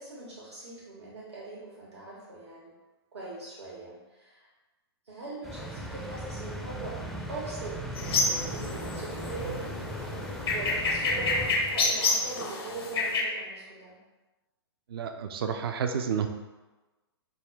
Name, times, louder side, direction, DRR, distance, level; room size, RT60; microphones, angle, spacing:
voice 1, 0.0-2.7 3.1-4.5 5.1-7.0 7.3-7.8 8.2-9.7 10.5-14.0, right 3 dB, 85° right, -6 dB, 1.3 m, -41 dB
sound 1, 5.4-12.1, right 1 dB, ahead, 0.4 m, -38 dB
sound 2, 8.0-13.2, left 3 dB, 65° left, 0.8 m, -29 dB
voice 2, 14.9-16.3, right 7 dB, 60° right, 6 dB, 0.5 m, -30 dB
5.4 x 2.2 x 3.4 m, 1.2 s
figure-of-eight pair, 115°, 14 cm